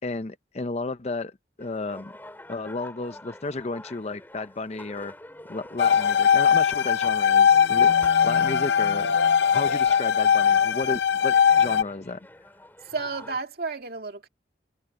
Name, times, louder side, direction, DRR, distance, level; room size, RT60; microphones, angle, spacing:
voice 1, 0.0-1.3 1.6-2.1 2.5-5.1 5.5-7.9 8.2-9.1 9.5-12.2, left 3 dB, 40° left, 0.6 m, -33 dB
sound 1, 1.6-13.4, left 1 dB, 10° left, 4.4 m, -46 dB
sound 2, 5.8-11.8, left 8 dB, 75° left, 0.8 m, -20 dB
voice 2, 12.9-14.3, right 4 dB, 60° right, 2.3 m, -32 dB
head